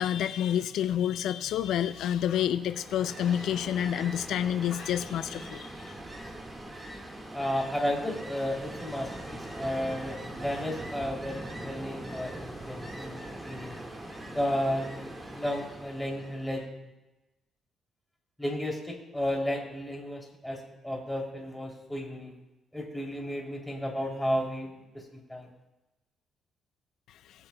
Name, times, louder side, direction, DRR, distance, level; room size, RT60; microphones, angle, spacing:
voice 1, 0.0-5.7, left 10 dB, 80° left, 11 dB, 0.4 m, -28 dB
Ocean, 2.5-16.6, right 1 dB, 20° right, 1.8 m, -42 dB
voice 2, 7.3-13.8 14.3-16.7 18.4-22.3 22.7-25.5, equal, 5° left, -1 dB, 3.0 m, -33 dB
20.5 x 7.3 x 2.3 m, 1.0 s
cardioid pair, 90°, 0 cm